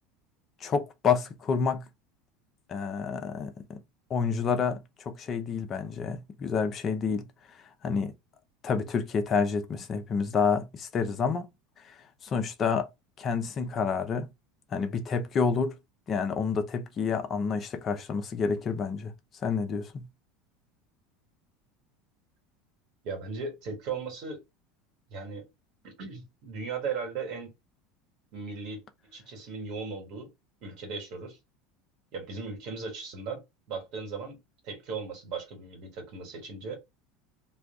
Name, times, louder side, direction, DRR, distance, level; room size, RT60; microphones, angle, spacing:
voice 1, 0.6-1.8 2.7-3.8 4.1-7.3 7.8-8.1 8.6-11.5 11.8-12.0 12.2-12.9 13.2-14.3 14.7-15.8 16.1-19.1 19.4-20.1, left 5 dB, 35° left, 0.6 m, -29 dB
voice 2, 23.0-24.4 25.1-25.4 25.8-27.5 28.3-28.8 29.1-30.3 30.6-31.4 32.1-33.4 33.7-34.4 34.6-36.8, right 4 dB, 60° right, 1.3 m, -37 dB
2.4 x 2.3 x 3.6 m
supercardioid pair, 110°, 0 cm